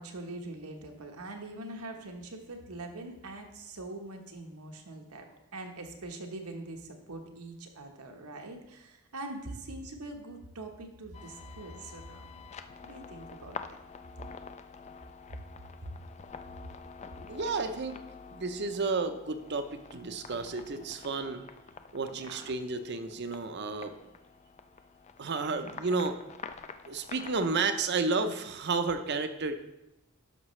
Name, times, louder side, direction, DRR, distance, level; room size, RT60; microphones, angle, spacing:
voice 1, 0.0-5.3 5.5-12.4 12.8-13.8 22.1-22.5 25.5-25.7, right 2 dB, 85° right, 3 dB, 1.2 m, -43 dB
sound 1, 11.1-27.4, left 5 dB, 30° left, 0.3 m, -48 dB
voice 2, 17.3-18.0 18.3-21.4 21.9-24.0 25.2-26.2 26.9-29.5, right 4 dB, 50° right, 9 dB, 0.6 m, -32 dB
11.0 x 6.4 x 3.2 m, 0.90 s
head